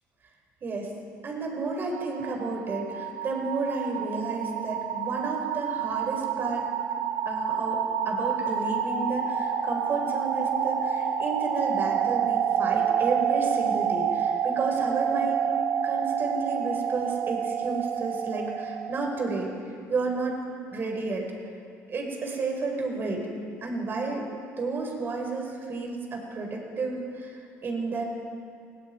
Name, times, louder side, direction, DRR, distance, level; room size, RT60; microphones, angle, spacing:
voice 1, 0.6-0.9 1.2-6.7 7.3-15.5 15.8-19.5 19.9-20.4 20.7-21.2 21.9-23.2 23.6-24.3 24.6-28.0, right 3 dB, 40° right, 1 dB, 5.4 m, -31 dB
sound 1, 1.5-19.4, right 8 dB, 65° right, 1.5 m, -28 dB
28.0 x 19.5 x 4.8 m, 2.3 s
cardioid pair, 105°, 6 cm